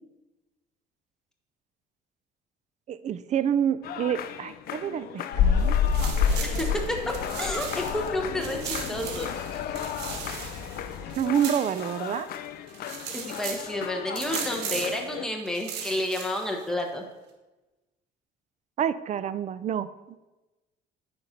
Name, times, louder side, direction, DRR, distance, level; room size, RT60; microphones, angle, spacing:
voice 1, 2.9-5.8 11.2-12.3 18.8-19.9, right 9 dB, 45° right, 14 dB, 0.4 m, -28 dB
sound 1, 3.8-15.3, left 10 dB, 65° left, 0.5 m, -37 dB
sound 2, 5.3-11.2, left 6 dB, 85° left, 1.0 m, -28 dB
sound 3, 5.6-8.1 8.4-12.4 12.7-13.7 14.2-15.1 15.5-16.6, right 7 dB, 85° right, 1.1 m, -38 dB
voice 2, 6.4-9.3 13.1-17.0, left 1 dB, 5° left, 1 dB, 1.3 m, -30 dB
8.9 x 4.5 x 5.2 m, 1.1 s
cardioid pair, 110°, 17 cm